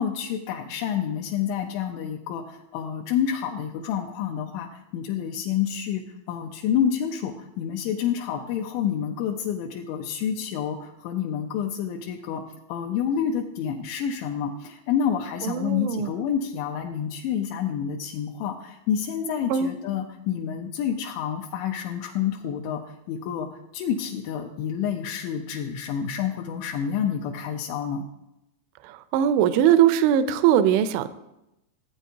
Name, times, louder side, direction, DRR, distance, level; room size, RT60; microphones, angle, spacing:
voice 1, 0.0-12.4 12.7-28.1, left 8 dB, 80° left, 1 dB, 2.9 m, -28 dB
voice 2, 15.4-16.1 19.5-19.7 28.8-31.1, right 10 dB, 85° right, 12 dB, 2.9 m, -21 dB
15.0 x 8.9 x 2.7 m, 0.88 s
omnidirectional pair, 5.5 m